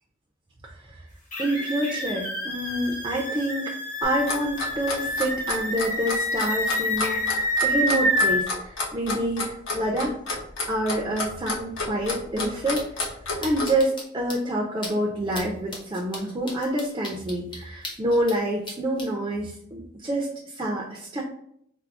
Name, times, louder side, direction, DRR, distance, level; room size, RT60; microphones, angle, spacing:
sound 1, 1.3-8.4, equal, 40° left, 0.9 m, -27 dB
voice 1, 1.4-3.7 4.0-10.1 10.7-12.9 13.4-21.2, right 1 dB, 20° right, -2 dB, 0.4 m, -27 dB
Clock, 4.0-13.7, left 3 dB, 70° left, 0.8 m, -30 dB
sound 2, 12.0-12.1 12.4-12.5 12.7-13.1 13.4-14.0 14.3-14.4 14.8-14.9 15.3-15.4 15.7-18.4 18.6-19.1, left 1 dB, 25° left, 0.6 m, -36 dB
4.5 x 2.0 x 2.4 m, 0.69 s
head